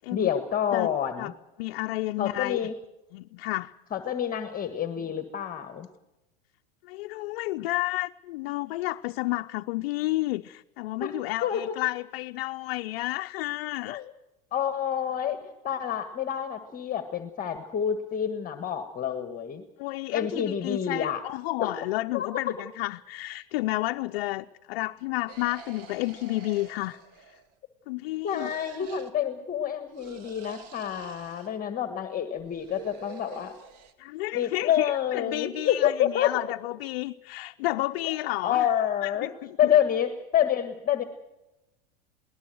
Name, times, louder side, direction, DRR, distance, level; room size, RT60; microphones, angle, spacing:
voice 1, 0.1-1.3 2.2-2.7 3.9-5.9 11.0-11.1 11.4-11.8 13.8-14.0 14.5-15.4 15.6-19.6 20.1-21.2 21.6-21.7 22.1-22.3 28.2-33.5 34.3-36.4 38.0-38.1 38.4-39.3 39.6-41.0, left 9 dB, 30° left, 8 dB, 1.6 m, -28 dB
voice 2, 1.6-2.7 3.1-3.7 6.8-14.0 19.8-27.0 27.9-28.5 34.0-38.7 39.0-39.7, left 19 dB, 70° left, 6 dB, 0.7 m, -31 dB
sound 1, 25.3-27.6 28.2-29.1 29.9-31.6 32.4-33.9, right 7 dB, 55° right, 2.5 m, -47 dB
21.0 x 19.0 x 7.8 m, 0.97 s
supercardioid pair, 110°, 29 cm